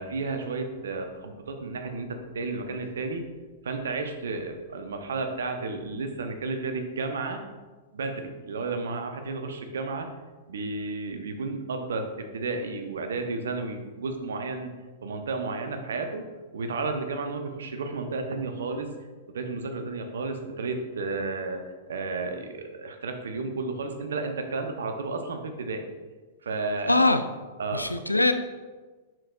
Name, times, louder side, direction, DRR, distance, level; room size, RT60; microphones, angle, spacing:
voice 1, 0.0-3.2 3.6-7.4 7.9-10.1 10.5-14.7 15.0-16.3 16.5-18.9 19.3-25.8 26.4-27.0 27.6-27.9, right 3 dB, 65° right, 6 dB, 0.7 m, -32 dB
voice 2, 26.9-27.2 27.7-28.3, left 2 dB, 85° left, 9 dB, 0.4 m, -21 dB
7.6 x 6.1 x 2.4 m, 1.3 s
figure-of-eight pair, 100°, 0 cm